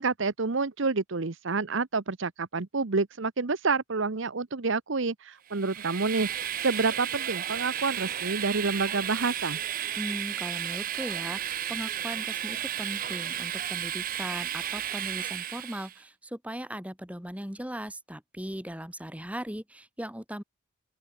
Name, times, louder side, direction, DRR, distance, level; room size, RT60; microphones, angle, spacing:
voice 1, 0.0-9.6, right 4 dB, 60° right, 0.9 m, -28 dB
Train, 5.5-16.0, right 11 dB, 40° right, 0.5 m, -33 dB
voice 2, 10.0-20.4, equal, 5° right, 2.1 m, -38 dB
open air
head